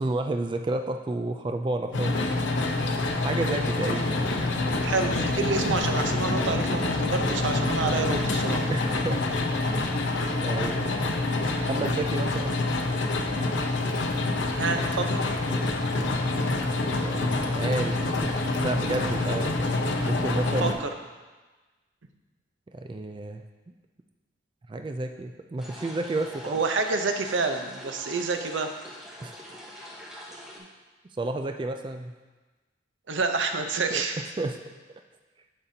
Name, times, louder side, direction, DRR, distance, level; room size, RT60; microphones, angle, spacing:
voice 1, 0.0-2.3 3.2-4.3 8.7-9.2 9.6-9.8 10.3-11.0 11.7-12.7 17.0-20.7 22.7-23.4 24.7-26.6 29.2-29.4 30.6-30.7 31.2-32.1 33.9-34.6, right 2 dB, 25° right, 6 dB, 0.3 m, -31 dB
sound 1, 1.9-20.7, left 2 dB, 85° left, 0.7 m, -27 dB
voice 2, 4.8-8.7 14.6-15.4 20.6-20.9 26.2-28.7 33.1-34.2, right 4 dB, 90° right, 5 dB, 0.7 m, -28 dB
sound 2, 25.6-30.6, equal, 5° right, 1.0 m, -44 dB
9.7 x 6.8 x 2.7 m, 1.3 s
head